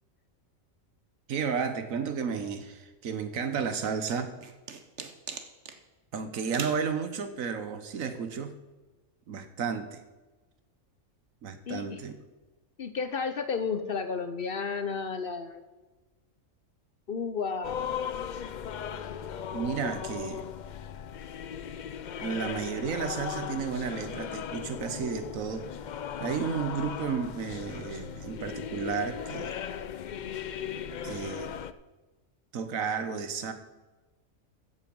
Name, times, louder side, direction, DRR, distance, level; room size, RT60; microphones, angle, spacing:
voice 1, 1.3-4.4 6.1-8.5 9.3-10.0 11.4-12.1 19.5-20.5 22.2-25.7 26.2-29.6 31.0-31.5 32.5-33.5, right 6 dB, 85° right, 9 dB, 1.4 m, -32 dB
sound 1, 3.8-5.8 6.5-6.8, right 6 dB, 60° right, 1.3 m, -40 dB
voice 2, 11.7-12.0 12.8-15.6 17.1-17.8, left 5 dB, 50° left, 10 dB, 0.9 m, -32 dB
sound 2, 17.6-31.7, left 8 dB, 70° left, 0.4 m, -37 dB
14.0 x 7.9 x 5.3 m, 1.2 s
omnidirectional pair, 1.4 m